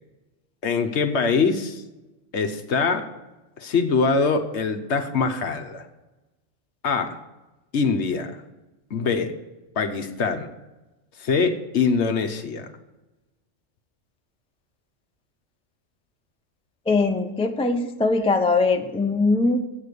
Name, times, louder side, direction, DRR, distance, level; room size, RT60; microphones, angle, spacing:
voice 1, 0.6-1.8 2.3-3.1 3.6-5.9 6.8-7.2 7.7-8.4 8.9-9.3 9.8-10.5 11.2-12.7, left 5 dB, 65° left, 7 dB, 1.2 m, -23 dB
voice 2, 16.9-19.6, left 3 dB, 10° left, 6 dB, 0.4 m, -21 dB
8.0 x 7.9 x 6.8 m, 1.1 s
omnidirectional pair, 1.3 m